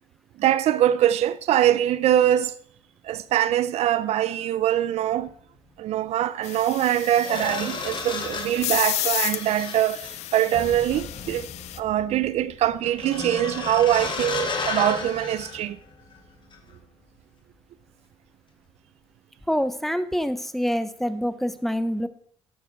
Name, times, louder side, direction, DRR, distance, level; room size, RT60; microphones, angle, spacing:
voice 1, 0.4-2.5 3.0-5.3 5.8-11.5 11.8-15.8, right 12 dB, 75° right, 0.6 m, -23 dB
sound 1, 5.1-5.3 6.5-16.2 16.5-16.8, left 4 dB, 45° left, 2.6 m, -34 dB
sound 2, 6.4-11.8, left 14 dB, 90° left, 0.7 m, -32 dB
voice 2, 19.5-22.1, equal, ahead, 1.0 m, -26 dB
12.0 x 8.8 x 4.7 m
cardioid pair, 85°, 11 cm